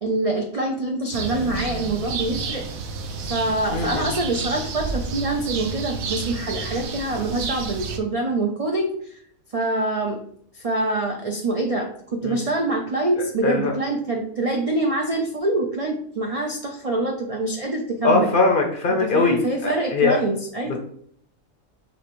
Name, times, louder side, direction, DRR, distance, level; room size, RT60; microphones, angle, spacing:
voice 1, 0.0-2.6 3.3-9.2 9.5-10.2 10.5-18.3 18.9-20.8, right 2 dB, 65° right, 1 dB, 0.3 m, -25 dB
sound 1, 1.1-8.0, right 4 dB, 85° right, 1.1 m, -30 dB
voice 2, 3.7-4.0 12.2-12.4 13.4-13.7 18.0-20.2 20.7-20.8, left 3 dB, 50° left, 2 dB, 0.7 m, -21 dB
5.5 x 3.2 x 3.0 m, 0.64 s
omnidirectional pair, 1.4 m